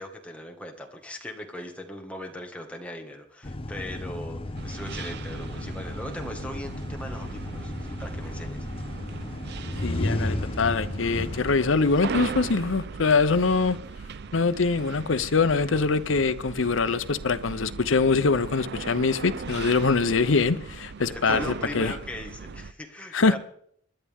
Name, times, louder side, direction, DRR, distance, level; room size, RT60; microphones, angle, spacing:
voice 1, 0.0-8.7 21.1-23.4, left 1 dB, 5° left, 1.7 m, -39 dB
sound 1, 3.4-12.5, left 1 dB, 30° left, 0.8 m, -33 dB
sound 2, 4.6-22.7, right 5 dB, 60° right, 0.5 m, -39 dB
voice 2, 9.8-13.8 14.3-21.9 23.1-23.4, left 4 dB, 75° left, 0.7 m, -23 dB
26.5 x 11.5 x 3.6 m
head